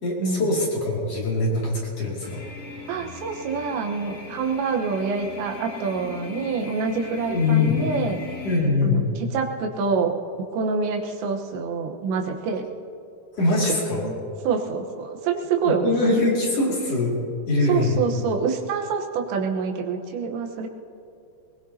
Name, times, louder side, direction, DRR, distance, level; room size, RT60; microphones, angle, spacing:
voice 1, 0.0-2.4 7.3-7.8 8.4-9.1 13.4-14.0 15.6-17.2 17.5-18.0, left 2 dB, 40° left, -5 dB, 3.1 m, -22 dB
sound 1, 2.2-8.6, left 4 dB, 80° left, 4.3 m, -38 dB
voice 2, 2.9-8.2 8.8-10.1 10.5-12.6 14.0-14.2 14.4-15.9 17.7-20.7, right 5 dB, 85° right, 2 dB, 3.4 m, -26 dB
21.5 x 21.0 x 2.8 m, 2.5 s
omnidirectional pair, 5.0 m